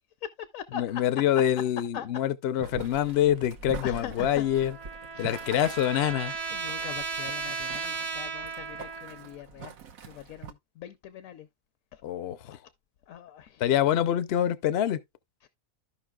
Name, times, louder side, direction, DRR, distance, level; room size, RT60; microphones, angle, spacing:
voice 1, 0.2-1.0 1.9-2.1 2.9-3.3 3.8-4.5 5.1-5.5 6.5-9.8 10.0-11.5 11.9-12.0 12.5-12.6 13.1-13.6 15.4-15.5, left 9 dB, 75° left, 1.1 m, -42 dB
voice 2, 0.7-4.7 5.2-6.3 12.0-12.6 13.6-15.0, left 11 dB, 60° left, 0.7 m, -26 dB
Boiling, 2.6-10.5, right 6 dB, 85° right, 1.4 m, -44 dB
Trumpet, 4.2-9.4, right 5 dB, 35° right, 0.9 m, -36 dB
14.0 x 5.4 x 2.3 m
omnidirectional pair, 1.4 m